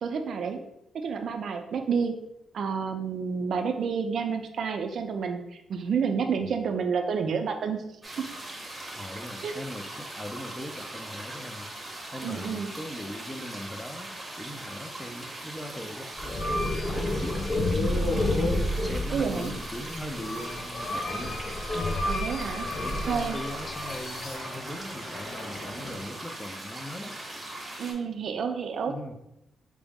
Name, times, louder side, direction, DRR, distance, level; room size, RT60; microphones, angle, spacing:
voice 1, 0.0-0.6 0.9-2.1 2.5-5.4 5.7-7.8 8.2-8.3 9.4-9.5 12.2-12.7 19.1-19.5 22.0-22.7 23.0-23.4 27.8-29.0, right 6 dB, 60° right, 6 dB, 0.4 m, -29 dB
sound 1, 8.0-27.9, right 1 dB, 10° right, 0.7 m, -40 dB
sound 2, 8.1-8.8 9.1-9.2 12.1-12.2 13.6-13.8 14.1-14.2 19.6-19.7 20.4-26.1, left 1 dB, 85° left, 1.3 m, -45 dB
voice 2, 9.0-11.7 12.1-18.3 18.8-21.5 22.8-27.2 28.9-29.1, left 1 dB, 10° left, 6 dB, 0.3 m, -40 dB
sound 3, 16.1-24.4, left 1 dB, 55° left, 0.6 m, -30 dB
4.7 x 2.0 x 3.5 m, 0.83 s
wide cardioid pair, 145°, 0 cm